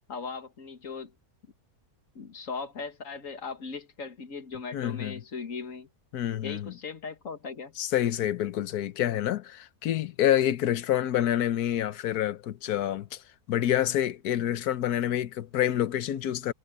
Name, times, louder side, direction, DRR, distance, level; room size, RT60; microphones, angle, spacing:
voice 1, 0.1-1.1 2.2-5.9 6.4-7.7, left 5 dB, 60° left, 2.1 m, -38 dB
voice 2, 4.7-5.2 6.1-6.7 7.8-13.2 13.5-16.5, left 11 dB, 85° left, 1.4 m, -27 dB
omnidirectional pair, 1.6 m